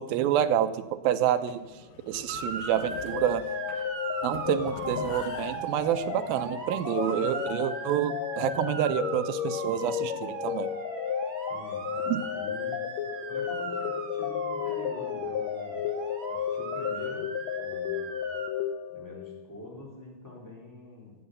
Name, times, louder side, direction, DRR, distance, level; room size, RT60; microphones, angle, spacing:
voice 1, 0.0-1.7 2.1-3.5 4.2-10.7 12.1-12.2, right 11 dB, 80° right, 12 dB, 2.5 m, -28 dB
sound 1, 1.3-7.6, left 6 dB, 65° left, 2.5 m, -46 dB
Motor vehicle (road) / Siren, 2.3-18.5, right 4 dB, 45° right, 1.8 m, -39 dB
sound 2, 2.9-19.5, left 9 dB, 85° left, 1.5 m, -33 dB
voice 2, 11.5-12.8 13.3-15.8 16.3-17.2 17.5-18.1 18.9-21.1, left 2 dB, 5° left, -2 dB, 3.8 m, -45 dB
16.5 x 8.7 x 8.2 m, 1.2 s
omnidirectional pair, 4.2 m